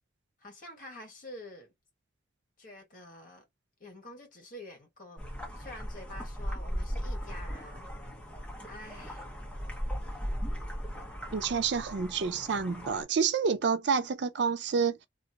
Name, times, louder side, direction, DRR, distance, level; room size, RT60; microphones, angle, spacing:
voice 1, 0.4-1.7 2.6-3.5 3.8-5.2 5.5-7.8 8.6-9.3, left 1 dB, 45° left, 1.4 m, -47 dB
sound 1, 5.2-13.0, equal, 5° left, 0.9 m, -37 dB
voice 2, 11.3-15.1, right 6 dB, 60° right, 0.4 m, -28 dB
2.9 x 2.4 x 2.7 m
head